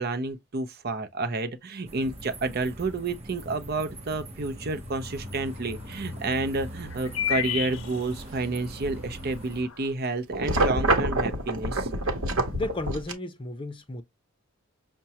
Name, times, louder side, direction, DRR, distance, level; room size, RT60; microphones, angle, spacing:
voice 1, 0.0-11.9, right 3 dB, 50° right, 0.6 m, -30 dB
sound 1, 1.8-9.6, equal, 30° right, 1.0 m, -41 dB
sound 2, 5.0-5.1 5.4-5.5 6.8-8.4 8.9-9.0 9.4-9.8, left 11 dB, 80° left, 0.5 m, -30 dB
sound 3, 10.3-13.1, right 2 dB, 80° right, 0.9 m, -26 dB
voice 2, 12.5-14.0, left 2 dB, 25° left, 0.6 m, -33 dB
5.8 x 2.2 x 2.8 m
head